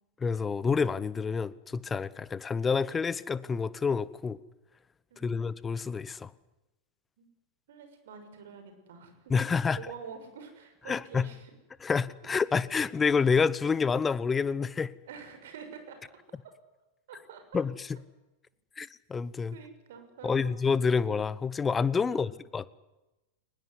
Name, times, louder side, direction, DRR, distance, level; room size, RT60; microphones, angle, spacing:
voice 1, 0.2-4.4 5.2-6.3 9.3-9.8 10.9-11.3 11.8-14.9 17.5-18.0 18.8-19.6 20.2-22.7, left 5 dB, 15° left, 1.0 m, -28 dB
voice 2, 5.1-5.5 7.2-7.3 7.7-9.4 9.8-11.5 12.7-12.9 15.1-16.0 17.1-17.6 19.5-20.5 22.1-22.4, right 6 dB, 55° right, 6.4 m, -47 dB
23.0 x 20.5 x 9.8 m
figure-of-eight pair, 90°, 0 cm